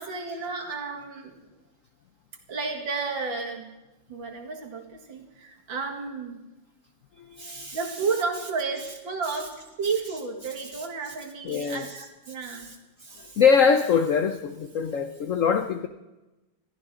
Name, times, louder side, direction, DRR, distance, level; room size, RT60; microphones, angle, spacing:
voice 1, 0.0-1.4 2.5-3.7 4.1-6.4 7.7-12.7, right 4 dB, 65° right, 2 dB, 2.6 m, -32 dB
voice 2, 7.2-7.8 10.7-10.8 11.4-11.9 12.5-12.7 13.0-15.9, left 6 dB, 80° left, 8 dB, 0.7 m, -24 dB
21.5 x 14.0 x 3.7 m, 1.0 s
omnidirectional pair, 2.3 m